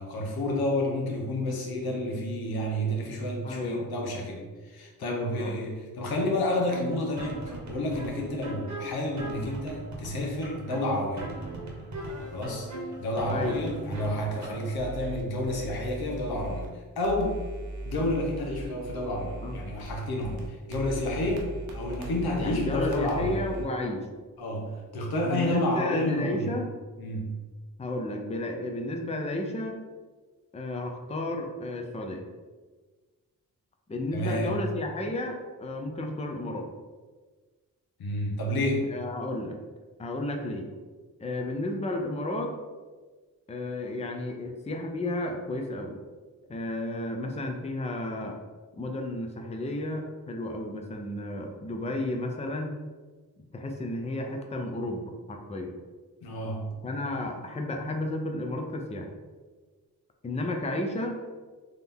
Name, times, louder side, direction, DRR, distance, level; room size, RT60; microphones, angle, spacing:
voice 1, 0.0-11.3 12.3-12.7 13.0-17.4 17.8-21.5 21.7-23.4 24.4-26.5 27.0-27.3 34.1-34.5 38.0-38.9 56.2-56.7, left 1 dB, 85° left, 0 dB, 0.9 m, -30 dB
voice 2, 3.4-3.8 5.0-5.6 13.3-13.5 19.4-19.6 22.4-24.1 25.2-26.7 27.8-29.8 30.5-32.2 33.9-36.7 38.9-39.6 40.0-40.7 41.2-42.5 43.5-45.9 46.5-48.4 48.8-52.8 53.5-55.7 56.8-59.1 60.2-61.2, left 1 dB, 20° left, 2 dB, 0.5 m, -32 dB
sound 1, 6.7-14.7, right 1 dB, 50° right, 1.0 m, -39 dB
sound 2, 12.0-16.7 17.0-23.6, right 2 dB, 85° right, 0.8 m, -40 dB
3.8 x 2.8 x 3.5 m, 1.4 s
cardioid pair, 70°, 36 cm